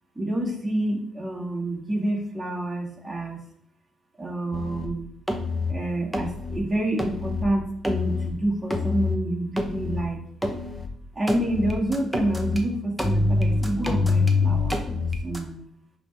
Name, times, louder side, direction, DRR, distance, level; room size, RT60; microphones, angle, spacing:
voice 1, 0.2-3.4 4.2-5.0 5.7-10.2 11.1-15.6, right 1 dB, 15° right, -2 dB, 1.9 m, -28 dB
sound 1, 4.5-4.9 5.3-5.8 6.1-6.6 7.0-7.5 7.8-8.3 8.7-9.2 9.6-10.0 10.4-10.9 11.3-12.6 13.0-15.4, left 3 dB, 5° left, 0.9 m, -25 dB
10.5 x 3.5 x 3.4 m, 0.67 s
cardioid pair, 90°, 0 cm